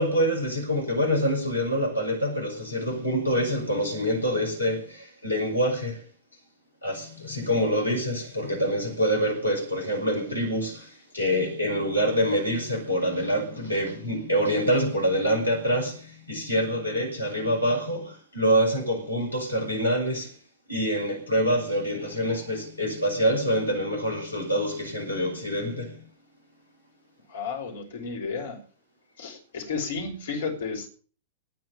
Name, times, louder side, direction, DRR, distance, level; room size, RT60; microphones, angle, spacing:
voice 1, 0.0-6.0 6.8-20.3 20.7-26.0, equal, 85° left, 6.3 m, -26 dB
voice 2, 27.3-28.6 29.2-30.9, left 5 dB, 60° left, 5.7 m, -32 dB
19.0 x 6.4 x 9.2 m
figure-of-eight pair, 100°, 0 cm